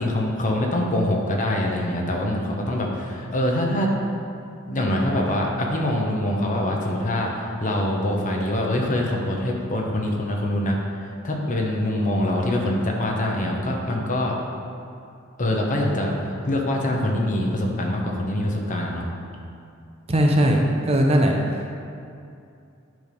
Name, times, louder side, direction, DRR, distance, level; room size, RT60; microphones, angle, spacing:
voice 1, 0.0-3.9 4.7-10.8 11.2-14.3 15.4-16.1 16.4-19.1, left 1 dB, 40° left, 0 dB, 0.9 m, -24 dB
voice 2, 20.1-21.3, equal, 30° right, 1 dB, 0.6 m, -19 dB
9.3 x 3.4 x 5.3 m, 2.5 s
head